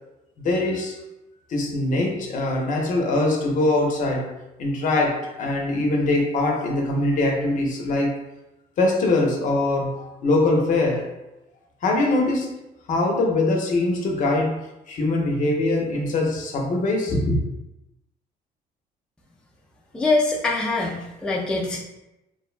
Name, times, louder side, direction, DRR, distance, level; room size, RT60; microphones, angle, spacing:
voice 1, 0.4-1.0 1.5-4.3 4.6-8.2 8.8-11.1 11.8-12.5 12.9-17.4, left 2 dB, 50° left, 1 dB, 0.6 m, -22 dB
voice 2, 19.9-21.8, left 3 dB, 5° left, -3 dB, 0.3 m, -23 dB
2.5 x 2.1 x 2.4 m, 0.94 s
cardioid pair, 110°, 17 cm